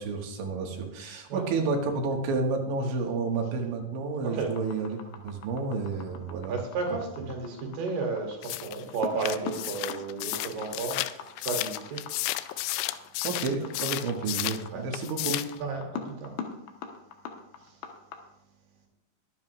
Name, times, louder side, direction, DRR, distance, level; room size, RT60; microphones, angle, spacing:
voice 1, 0.0-5.0 5.2-6.6 13.2-15.4, right 4 dB, 90° right, 1 dB, 4.0 m, -30 dB
sound 1, 4.5-18.2, left 6 dB, 70° left, 3.0 m, -40 dB
voice 2, 6.5-13.1 14.7-14.8 15.6-16.3 17.6-17.8, right 4 dB, 65° right, 0 dB, 4.4 m, -33 dB
sound 2, 8.4-14.6 14.9-15.6, left 17 dB, 90° left, 2.9 m, -33 dB
22.5 x 9.8 x 2.5 m, 0.85 s
omnidirectional pair, 5.2 m